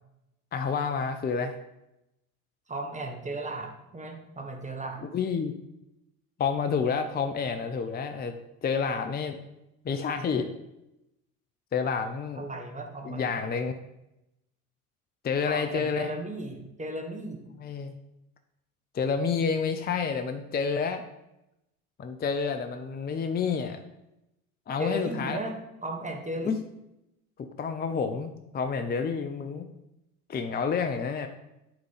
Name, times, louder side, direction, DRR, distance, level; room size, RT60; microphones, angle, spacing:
voice 1, 0.5-1.6 5.1-5.5 6.4-8.3 8.6-9.4 9.8-10.5 11.7-12.4 13.0-13.7 15.2-16.1 17.6-17.9 18.9-21.0 22.0-23.8 24.7-25.4 26.4-26.6 27.6-29.7 30.3-31.3, left 5 dB, 20° left, 7 dB, 0.6 m, -29 dB
voice 2, 2.7-5.0 12.3-13.5 15.5-17.4 24.8-25.6 25.8-26.6, right 1 dB, 15° right, 1 dB, 1.6 m, -36 dB
8.7 x 3.8 x 5.6 m, 0.89 s
hypercardioid pair, 60°, 44 cm